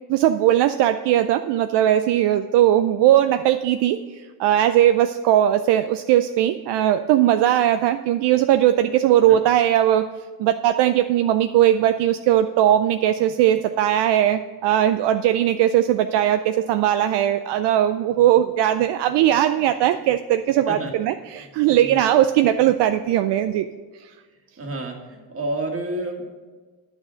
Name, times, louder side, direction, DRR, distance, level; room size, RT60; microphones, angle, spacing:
voice 1, 0.1-10.1 10.4-23.7 24.0-24.1, right 12 dB, 70° right, 9 dB, 0.5 m, -19 dB
voice 2, 24.6-26.3, right 2 dB, 30° right, 2 dB, 1.8 m, -29 dB
9.3 x 6.3 x 6.3 m, 1.4 s
cardioid pair, 100°, 44 cm